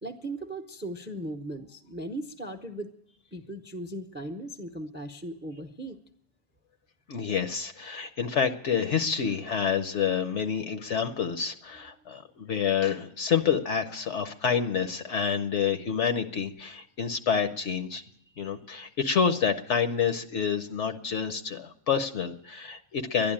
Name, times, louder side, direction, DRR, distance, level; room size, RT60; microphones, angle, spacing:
voice 1, 0.0-2.9 3.3-6.0, right 1 dB, 10° right, 8 dB, 0.5 m, -37 dB
voice 2, 7.1-18.0 18.4-23.3, left 7 dB, 60° left, 9 dB, 1.0 m, -28 dB
12.0 x 10.5 x 8.7 m, 0.69 s
omnidirectional pair, 1.5 m